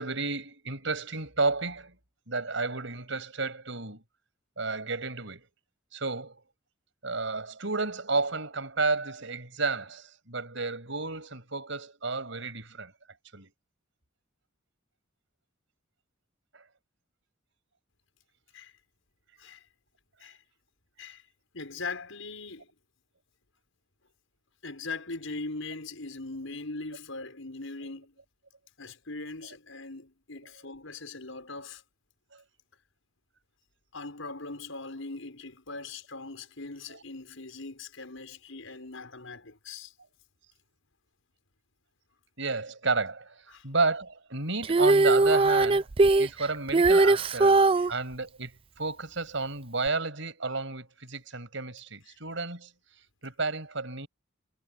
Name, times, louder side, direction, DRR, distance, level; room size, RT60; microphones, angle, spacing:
voice 1, 0.0-2.0 2.3-4.0 4.6-5.4 5.9-6.4 7.0-12.9 13.3-13.5 16.5-16.6 32.3-32.4 42.4-45.9 46.2-52.7 53.2-54.1, right 3 dB, 65° right, 7.3 m, -32 dB
voice 2, 21.5-22.7 24.6-28.1 28.8-31.8 33.9-39.9 43.5-43.6 47.7-47.9, left 3 dB, 85° left, 6.2 m, -40 dB
Female singing, 44.6-47.9 49.9-50.0, right 3 dB, 30° right, 0.4 m, -20 dB
head